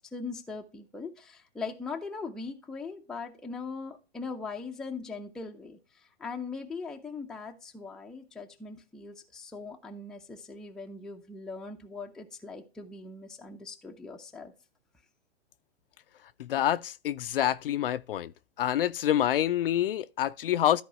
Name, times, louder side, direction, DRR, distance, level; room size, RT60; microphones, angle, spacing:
voice 1, 0.1-14.5, left 4 dB, ahead, 0.5 m, -40 dB
voice 2, 16.4-18.3 18.6-20.8, left 11 dB, 50° left, 0.5 m, -27 dB
13.5 x 4.6 x 3.0 m
hypercardioid pair, 125°, 35 cm